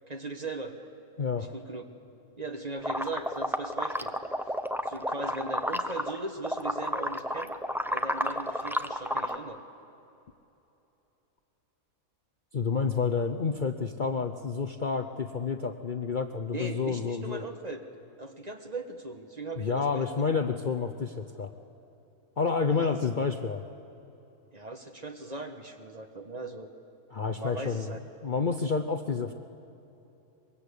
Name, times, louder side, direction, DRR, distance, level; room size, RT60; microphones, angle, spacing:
voice 1, 0.1-0.9 1.4-1.8 2.4-4.1 4.9-7.5 7.9-9.6 16.5-17.8 18.2-20.3 22.7-23.0 24.5-26.7 27.4-28.0, right 2 dB, 30° right, 5 dB, 1.4 m, -39 dB
voice 2, 1.2-1.5 12.5-17.4 19.6-21.5 22.4-23.6 27.1-28.0 28.2-29.3, left 5 dB, 40° left, 5 dB, 0.8 m, -29 dB
sound 1, 2.8-6.2 6.4-9.4, equal, ahead, 0.5 m, -31 dB
23.5 x 21.5 x 8.4 m, 3.0 s
omnidirectional pair, 1.5 m